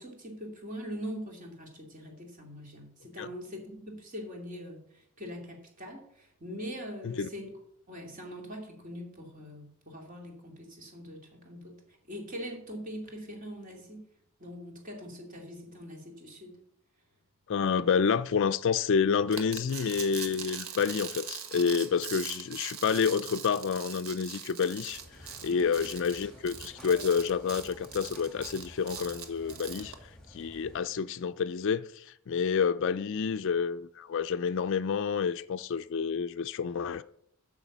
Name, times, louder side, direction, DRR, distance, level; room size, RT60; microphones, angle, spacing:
voice 1, 0.0-7.6 7.9-14.0 14.4-16.6 25.5-25.9, equal, 35° right, 2.4 m, -42 dB
voice 2, 17.5-25.0 25.4-29.9 30.3-37.0, left 6 dB, 55° left, 0.4 m, -29 dB
sound 1, 19.3-29.9, right 7 dB, 70° right, 1.3 m, -42 dB
sound 2, 24.9-30.8, equal, 5° left, 2.4 m, -51 dB
9.0 x 6.2 x 7.2 m
head